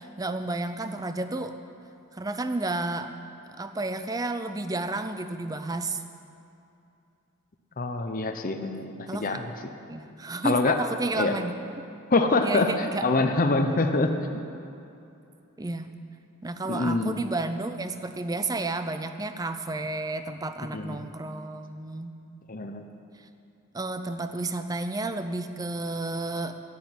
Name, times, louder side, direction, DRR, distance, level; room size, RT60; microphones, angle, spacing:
voice 1, 0.0-1.6 2.1-3.1 3.5-6.0 9.1-9.4 9.9-11.8 12.4-13.1 15.6-15.9 16.4-22.2 23.2-23.3 23.7-26.6, right 2 dB, 15° right, 9 dB, 0.5 m, -31 dB
voice 2, 7.8-9.5 10.4-10.8 11.2-11.4 12.1-14.4 16.7-17.2 20.7-21.1 22.5-22.8, left 3 dB, 35° left, 5 dB, 0.7 m, -25 dB
10.5 x 10.0 x 8.9 m, 2.7 s
head